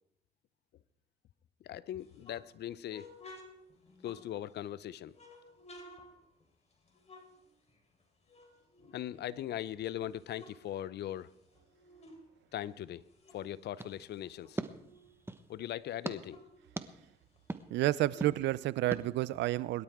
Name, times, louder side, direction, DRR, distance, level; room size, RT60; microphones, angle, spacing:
voice 1, 1.6-3.4 4.0-5.1 8.8-11.3 12.5-13.0 13.3-14.6 15.5-16.4, left 11 dB, 65° left, 0.7 m, -40 dB
sound 1, 2.0-4.7 5.1-8.0 8.3-9.6 10.0-12.3 12.6-15.1 15.5-15.6 15.8-19.3, left 1 dB, 35° left, 4.1 m, -56 dB
sound 2, 13.8-15.5 16.0-16.2 16.8-16.9 17.5-17.6 18.2-18.3 18.9-19.0, right 2 dB, 15° right, 1.2 m, -40 dB
voice 2, 17.7-19.8, right 16 dB, 75° right, 0.6 m, -30 dB
22.5 x 12.0 x 3.7 m
supercardioid pair, 70°, 18 cm